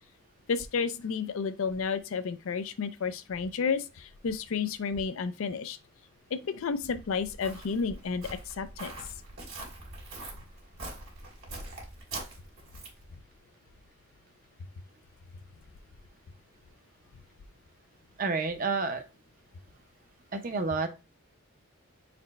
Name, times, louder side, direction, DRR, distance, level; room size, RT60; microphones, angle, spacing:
voice 1, 0.5-5.8 6.3-8.9, left 5 dB, 70° left, 0.4 m, -31 dB
Walk footsteps, 6.8-13.1, right 2 dB, 70° right, 1.9 m, -43 dB
voice 2, 18.2-19.0 20.3-20.9, right 4 dB, 40° right, 0.6 m, -29 dB
4.1 x 2.1 x 4.1 m
head